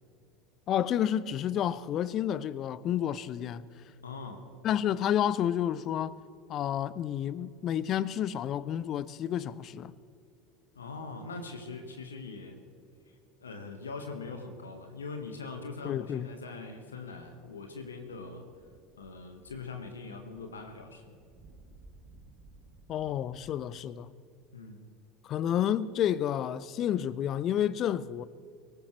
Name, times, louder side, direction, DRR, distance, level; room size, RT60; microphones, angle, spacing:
voice 1, 0.7-3.6 4.6-6.2 6.5-9.9 15.8-16.3 22.9-24.1 25.2-28.3, left 10 dB, 40° left, 0.6 m, -30 dB
voice 2, 4.0-4.4 10.7-12.6 13.1-18.4 19.0-21.1 24.5-24.9, left 4 dB, 80° left, 1.4 m, -42 dB
sound 1, 18.4-23.5, right 3 dB, 45° right, 3.2 m, -58 dB
24.5 x 15.0 x 3.2 m
figure-of-eight pair, 75°, 0 cm